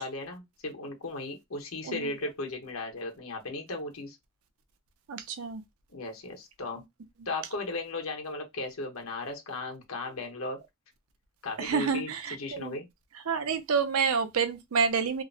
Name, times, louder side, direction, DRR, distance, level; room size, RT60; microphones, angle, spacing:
voice 1, 0.0-4.2 5.9-6.8 7.3-10.6 11.4-12.1 12.4-12.9, left 2 dB, 80° left, 1.0 m, -36 dB
voice 2, 5.1-5.6 11.6-12.8 13.3-15.2, right 6 dB, 90° right, 0.5 m, -28 dB
2.7 x 2.0 x 2.6 m
head